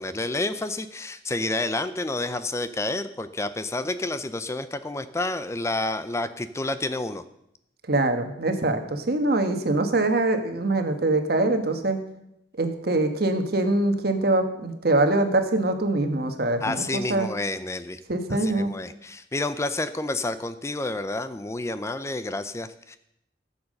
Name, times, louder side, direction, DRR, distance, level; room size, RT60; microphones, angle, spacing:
voice 1, 0.0-7.2 16.6-18.0 18.3-23.0, left 2 dB, 15° left, 12 dB, 0.5 m, -29 dB
voice 2, 7.9-12.0 12.6-17.3 18.1-18.7, right 2 dB, 60° right, 7 dB, 1.4 m, -23 dB
14.0 x 7.1 x 6.5 m, 0.80 s
head